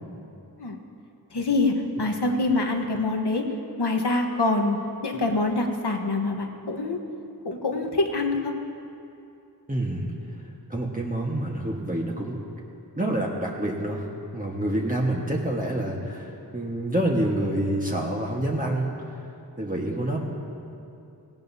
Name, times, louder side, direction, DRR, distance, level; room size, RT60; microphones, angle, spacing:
voice 1, 1.3-1.7 2.0-3.4 3.8-4.8 5.0-7.0 7.4-8.5, left 2 dB, 85° left, 3 dB, 1.3 m, -25 dB
voice 2, 9.7-10.1 10.7-12.4 13.0-14.1 14.3-18.9 19.6-20.2, right 1 dB, 20° right, -3 dB, 1.5 m, -27 dB
18.0 x 17.0 x 2.8 m, 2.7 s
wide cardioid pair, 50°, 39 cm